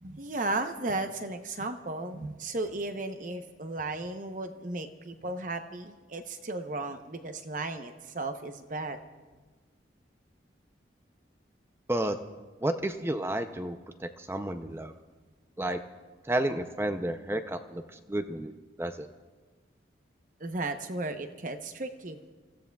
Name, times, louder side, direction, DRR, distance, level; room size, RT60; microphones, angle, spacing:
voice 1, 0.0-9.0 20.4-22.2, right 2 dB, 45° right, 8 dB, 0.8 m, -35 dB
voice 2, 12.6-14.9 15.6-15.8 16.2-17.8 18.1-18.5 18.8-19.1, right 1 dB, 15° right, 8 dB, 0.5 m, -31 dB
29.5 x 15.5 x 2.3 m, 1.3 s
head